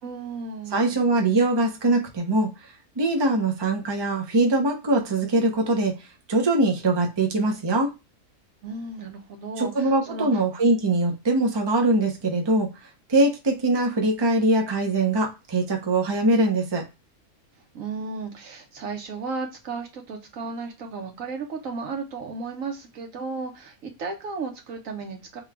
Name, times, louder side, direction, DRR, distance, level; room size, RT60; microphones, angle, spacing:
voice 1, 0.0-1.1 8.6-10.4 17.7-25.4, right 4 dB, 65° right, 3 dB, 1.2 m, -34 dB
voice 2, 0.7-2.5 3.0-5.9 6.3-7.9 9.6-12.7 13.1-16.8, right 2 dB, 30° right, 2 dB, 0.5 m, -22 dB
3.7 x 2.4 x 3.3 m, 0.25 s
omnidirectional pair, 1.6 m